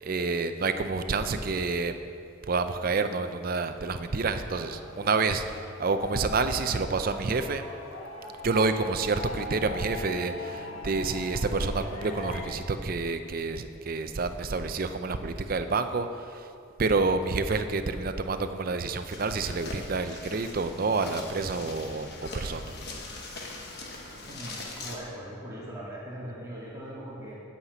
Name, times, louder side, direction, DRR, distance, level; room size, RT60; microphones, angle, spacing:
voice 1, 0.0-1.9 2.4-7.6 8.4-16.5 16.8-22.7, right 4 dB, 45° right, 9 dB, 0.5 m, -28 dB
sound 1, 4.3-12.5, left 2 dB, 85° left, 1.4 m, -41 dB
sound 2, 19.1-25.0, left 2 dB, 50° left, 1.2 m, -41 dB
voice 2, 24.3-27.4, equal, 15° right, -7 dB, 1.9 m, -40 dB
8.6 x 5.7 x 8.1 m, 2.5 s
head